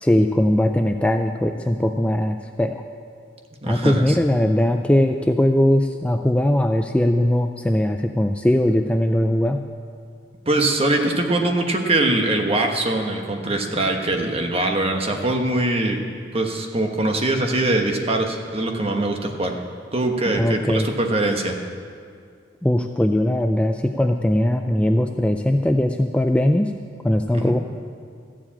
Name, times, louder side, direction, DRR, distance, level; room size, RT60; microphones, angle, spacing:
voice 1, 0.0-2.8 3.7-9.6 20.4-20.9 22.6-26.7 27.0-27.6, left 1 dB, 5° left, 5 dB, 0.3 m, -20 dB
voice 2, 3.6-4.0 10.5-16.0 16.3-19.6 19.9-21.6 27.4-27.5, right 2 dB, 30° right, 3 dB, 1.2 m, -22 dB
14.0 x 7.5 x 8.6 m, 2.2 s
head